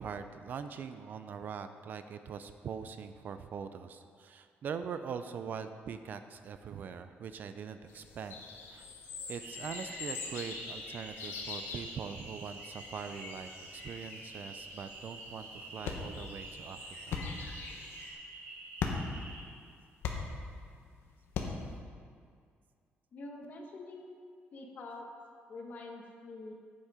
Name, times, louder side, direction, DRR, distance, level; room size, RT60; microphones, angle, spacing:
voice 1, 0.0-8.4 8.7-8.9 9.3-16.8 17.1-17.2, right 6 dB, 45° right, 10 dB, 0.4 m, -42 dB
sound 1, 7.9-18.1, left 4 dB, 85° left, 1.6 m, -46 dB
sound 2, 9.4-19.4, right 2 dB, 85° right, 1.9 m, -48 dB
sound 3, 15.0-21.8, left 5 dB, 70° left, 1.1 m, -40 dB
voice 2, 23.1-24.1 24.5-25.1 25.5-26.5, left 2 dB, 40° left, 1 dB, 1.2 m, -45 dB
9.1 x 8.3 x 4.9 m, 2.1 s
cardioid pair, 175°, 4 cm